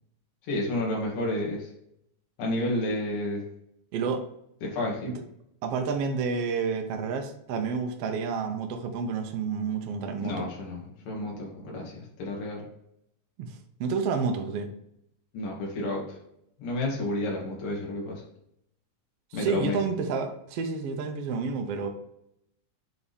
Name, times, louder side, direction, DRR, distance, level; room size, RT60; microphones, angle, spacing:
voice 1, 0.5-1.7 2.4-3.4 4.6-5.1 10.2-12.6 15.3-16.2 16.6-18.2 19.3-19.8, left 1 dB, 85° left, -3 dB, 3.7 m, -31 dB
voice 2, 3.9-4.2 5.1-5.2 5.6-10.5 13.4-14.7 19.3-21.9, right 5 dB, 70° right, 4 dB, 1.5 m, -30 dB
8.6 x 4.1 x 3.5 m, 0.76 s
omnidirectional pair, 3.8 m